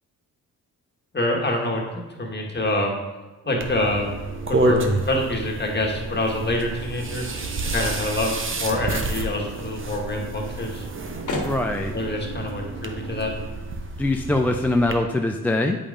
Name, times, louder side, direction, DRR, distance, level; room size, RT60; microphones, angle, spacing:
voice 1, 1.1-1.8 2.2-3.0 3.4-4.1 4.5-7.2 7.7-10.9 11.9-13.3, left 1 dB, 25° left, 0 dB, 1.6 m, -26 dB
sound 1, 3.4-13.5, right 5 dB, 80° right, 0.7 m, -40 dB
sound 2, 3.6-15.0, right 2 dB, 30° right, 0.8 m, -29 dB
sound 3, 5.9-14.7, left 2 dB, 45° left, 1.5 m, -41 dB
voice 2, 11.4-11.9 14.0-15.8, left 2 dB, 5° left, 3 dB, 0.3 m, -22 dB
8.6 x 5.0 x 2.6 m, 1.2 s
supercardioid pair, 50°, 41 cm